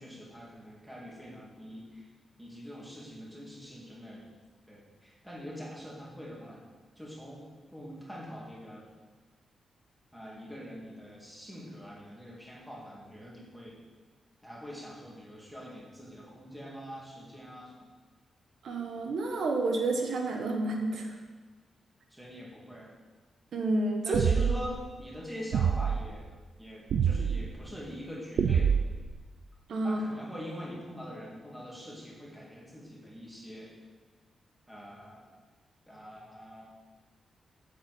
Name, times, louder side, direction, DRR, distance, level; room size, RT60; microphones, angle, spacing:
voice 1, 0.0-2.1 2.4-4.2 4.7-6.6 7.0-8.9 10.1-13.8 14.4-17.9 22.1-22.9 24.0-26.3 26.6-28.7 29.8-33.7 34.7-35.2 35.9-36.7, equal, 5° right, -4 dB, 2.6 m, -44 dB
voice 2, 18.6-21.1 23.5-24.2 29.7-30.2, right 2 dB, 65° right, 2 dB, 1.3 m, -30 dB
sound 1, 24.1-24.7 25.5-26.0 26.9-27.4 28.4-29.1, right 7 dB, 85° right, 0.5 m, -25 dB
8.3 x 8.0 x 7.9 m, 1.4 s
wide cardioid pair, 170°, 0 cm